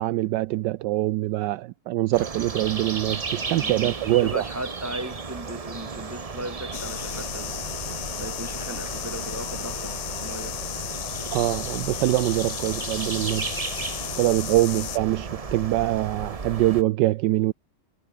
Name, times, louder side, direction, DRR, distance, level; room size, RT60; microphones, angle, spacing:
voice 1, 0.0-4.4 11.3-13.6 14.2-17.5, right 17 dB, 75° right, 1.0 m, -24 dB
sound 1, 2.1-16.8, right 4 dB, 40° right, 0.5 m, -34 dB
voice 2, 4.1-7.5 8.2-9.9 10.2-10.5, right 1 dB, 5° right, 4.8 m, -36 dB
sound 2, 6.7-15.0, left 15 dB, 70° left, 1.3 m, -34 dB
omnidirectional pair, 2.3 m